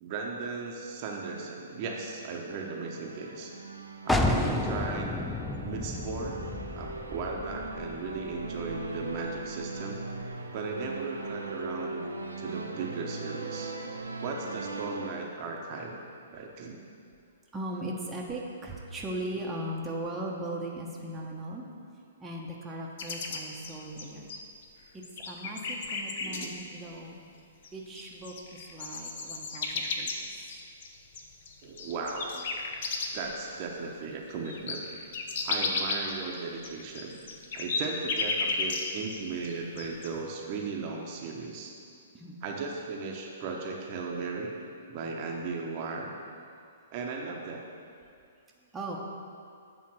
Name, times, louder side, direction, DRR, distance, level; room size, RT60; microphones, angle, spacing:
voice 1, 0.0-3.5 4.0-5.1 5.6-6.4 6.7-10.0 10.5-12.1 12.4-13.7 14.2-16.0 16.3-16.8 26.2-26.5 31.6-32.3 33.1-34.8 35.4-37.2 37.5-41.7 42.4-44.5 44.9-46.2 46.9-47.7, right 4 dB, 40° right, 0 dB, 0.9 m, -36 dB
sound 1, 1.3-15.1, right 3 dB, 85° right, 0.5 m, -40 dB
sound 2, 4.1-9.6, left 2 dB, 5° left, 0.4 m, -32 dB
voice 2, 17.5-21.6 22.2-24.3 24.9-27.2 27.7-30.3 42.1-42.4 48.7-49.0, right 1 dB, 10° right, -3 dB, 0.9 m, -38 dB
sound 3, 23.0-24.6 25.0-26.5 27.6-27.7 28.0-33.3 33.7-33.8 34.1-39.2 39.4-40.1, left 4 dB, 55° left, 0.8 m, -33 dB
8.4 x 3.7 x 6.2 m, 2.4 s
figure-of-eight pair, 120°, 0 cm